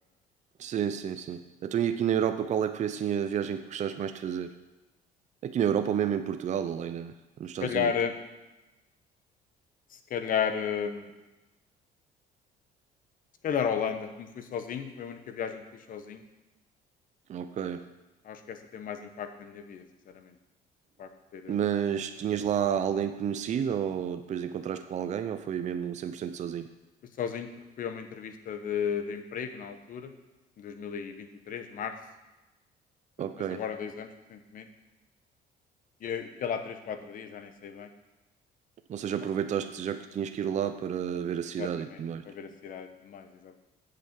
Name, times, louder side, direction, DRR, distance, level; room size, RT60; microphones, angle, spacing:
voice 1, 0.6-4.5 5.4-7.1 7.4-7.9 17.3-17.8 21.5-26.7 33.2-33.6 38.9-42.2, right 8 dB, 45° right, 9 dB, 0.6 m, -30 dB
voice 2, 7.6-8.1 9.9-11.1 13.4-16.2 18.2-20.3 21.0-21.6 27.2-27.5 27.8-30.1 30.6-31.9 33.2-34.7 36.0-37.9 41.6-43.6, left 7 dB, 55° left, 8 dB, 1.1 m, -34 dB
8.2 x 6.8 x 7.4 m, 1.1 s
cardioid pair, 110°, 17 cm